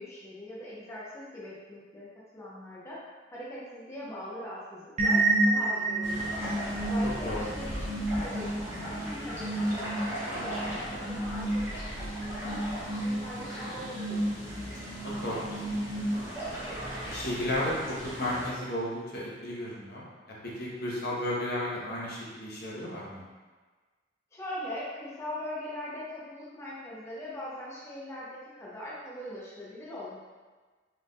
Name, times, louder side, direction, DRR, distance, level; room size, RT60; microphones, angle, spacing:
voice 1, 0.0-2.1 2.3-3.0 3.3-6.3 6.8-9.5 9.8-11.9 12.3-12.6 12.9-14.3 24.3-30.2, left 1 dB, 15° left, -8 dB, 0.7 m, -41 dB
sound 1, 5.0-16.6, right 2 dB, 40° right, 0.5 m, -31 dB
sound 2, 6.0-18.5, equal, 15° right, 0.9 m, -38 dB
voice 2, 7.0-7.5 15.0-15.8 17.0-20.0 20.4-23.3, left 1 dB, 60° left, -5 dB, 0.9 m, -33 dB
3.8 x 3.3 x 2.6 m, 1.4 s
head